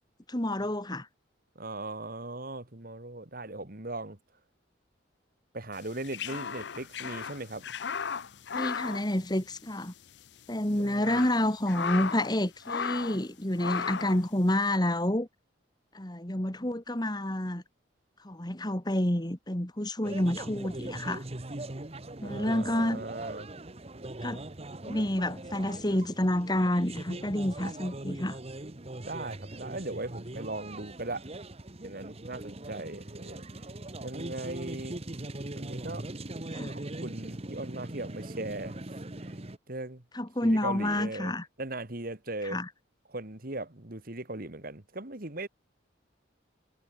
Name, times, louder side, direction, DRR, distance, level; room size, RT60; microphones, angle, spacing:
voice 1, 0.3-1.1 8.5-9.9 10.5-15.3 15.9-17.6 18.2-21.2 22.2-23.0 24.2-24.4 24.8-28.4 36.5-36.7 40.1-41.5 42.4-42.7, left 1 dB, 20° left, 2.2 m, -29 dB
voice 2, 1.6-4.2 5.5-7.7 10.7-11.2 22.2-23.5 29.0-31.3 31.8-33.5 34.0-35.0 35.6-36.1 36.7-38.8 39.2-39.4 39.7-40.0 40.4-41.3 41.6-42.6 43.1-45.5, right 2 dB, 50° right, 2.4 m, -38 dB
sound 1, 5.8-9.9 10.1-10.3 10.8-12.4 12.6-13.2 13.6-14.2, left 6 dB, 60° left, 0.6 m, -35 dB
sound 2, 20.0-39.6, right 1 dB, 30° right, 1.3 m, -41 dB
head